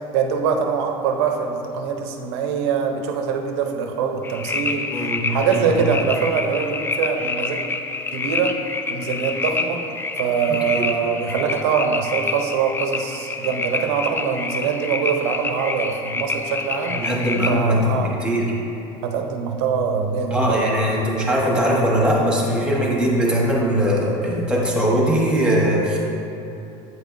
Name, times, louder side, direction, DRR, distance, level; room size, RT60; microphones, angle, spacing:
voice 1, 0.1-4.9 5.3-7.6 8.1-8.6 8.9-9.8 10.2-17.0 17.5-18.2 19.0-20.9, right 6 dB, 90° right, 4 dB, 0.7 m, -23 dB
sound 1, 4.2-17.6, left 4 dB, 15° left, 0.3 m, -28 dB
voice 2, 4.9-5.6 10.5-10.9 16.9-18.5 20.3-26.0, equal, 5° right, -3 dB, 1.2 m, -21 dB
7.9 x 5.5 x 2.6 m, 2.8 s
supercardioid pair, 120°, 14 cm